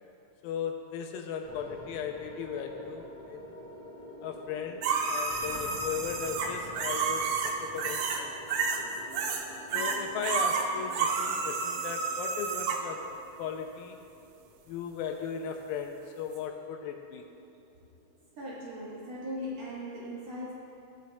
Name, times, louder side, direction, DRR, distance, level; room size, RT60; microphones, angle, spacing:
voice 1, 0.4-3.4 4.2-8.3 8.8-8.9 9.7-14.0 14.7-17.3, left 7 dB, 85° left, 4 dB, 2.3 m, -37 dB
sound 1, 1.4-19.8, equal, 20° left, 0.3 m, -48 dB
sound 2, 4.8-8.2 8.5-9.4 9.7-12.8 16.4-16.5, right 5 dB, 80° right, 2.0 m, -30 dB
voice 2, 18.4-20.5, equal, 60° right, -7 dB, 2.1 m, -38 dB
17.5 x 6.5 x 2.3 m, 2.7 s
omnidirectional pair, 4.2 m